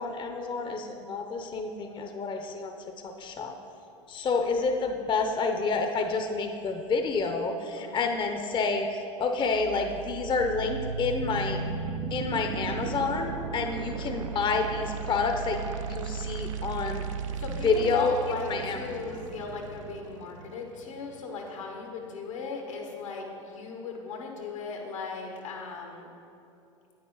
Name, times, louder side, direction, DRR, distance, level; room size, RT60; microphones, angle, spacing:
voice 1, 0.0-2.8 3.0-3.5 4.1-11.6 12.1-17.1 17.5-18.2 18.5-18.8, left 4 dB, 30° left, 5 dB, 0.7 m, -29 dB
voice 2, 7.8-8.1 13.7-13.9 17.4-26.1, left 4 dB, 80° left, 2 dB, 1.6 m, -37 dB
sound 1, 9.4-21.4, right 5 dB, 75° right, 0.7 m, -36 dB
9.4 x 8.9 x 3.9 m, 2.7 s
hypercardioid pair, 85°, 17 cm